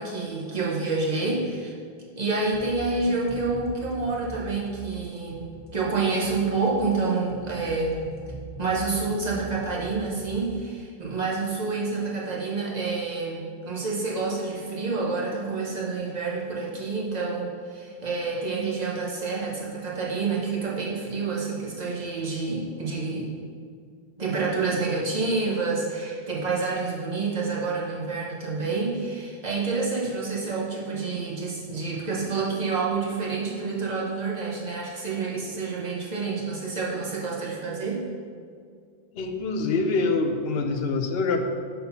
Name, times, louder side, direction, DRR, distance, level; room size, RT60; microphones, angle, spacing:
voice 1, 0.0-1.7 2.2-5.5 5.7-8.0 8.6-23.3 24.2-38.0, right 4 dB, 45° right, -4 dB, 1.3 m, -28 dB
sound 1, 2.5-10.5, right 2 dB, 10° left, 1.0 m, -42 dB
voice 2, 39.1-41.4, left 3 dB, 75° left, 6 dB, 0.9 m, -25 dB
6.1 x 3.9 x 5.6 m, 2.2 s
omnidirectional pair, 1.0 m